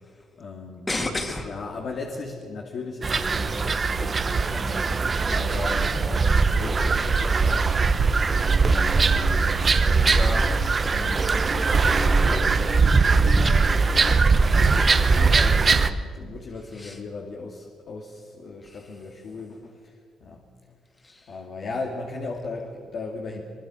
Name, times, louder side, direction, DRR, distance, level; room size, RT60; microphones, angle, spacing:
voice 1, 0.0-0.9 1.4-10.3 10.9-20.4 21.3-23.4, left 3 dB, 55° left, 0 dB, 2.5 m, -37 dB
voice 2, 0.9-1.5 10.1-11.3 16.7-17.0 18.7-18.8 21.0-21.3, left 2 dB, 25° left, 4 dB, 3.1 m, -32 dB
sound 1, 3.0-15.9, right 4 dB, 35° right, 1.0 m, -21 dB
23.5 x 22.5 x 6.6 m, 2.1 s
cardioid pair, 90°, 0 cm